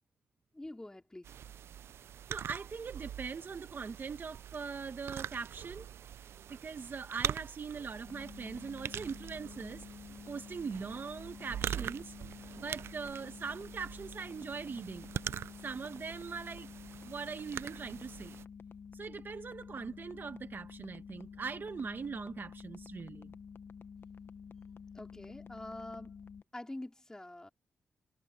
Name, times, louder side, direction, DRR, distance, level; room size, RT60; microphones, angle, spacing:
voice 1, 0.5-1.3 24.9-26.1 26.5-27.5, left 1 dB, 15° left, 3.8 m, -45 dB
sound 1, 1.2-18.4, right 9 dB, 80° right, 0.3 m, -43 dB
voice 2, 2.3-5.9 6.5-9.8 10.3-12.1 12.6-15.1 15.6-16.7 17.0-18.4 18.9-23.3, right 5 dB, 55° right, 1.3 m, -41 dB
sound 2, 8.1-26.4, left 6 dB, 65° left, 0.9 m, -50 dB
cardioid pair, 65°, 4 cm